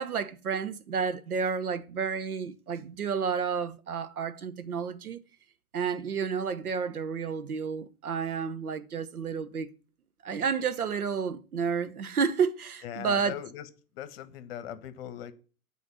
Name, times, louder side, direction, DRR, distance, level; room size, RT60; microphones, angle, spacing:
voice 1, 0.0-5.2 5.7-9.7 10.2-13.3, right 6 dB, 80° right, 1.0 m, -31 dB
voice 2, 12.8-13.7 13.9-15.3, left 10 dB, 40° left, 1.2 m, -40 dB
8.4 x 4.2 x 7.0 m
hypercardioid pair, 120°, 43 cm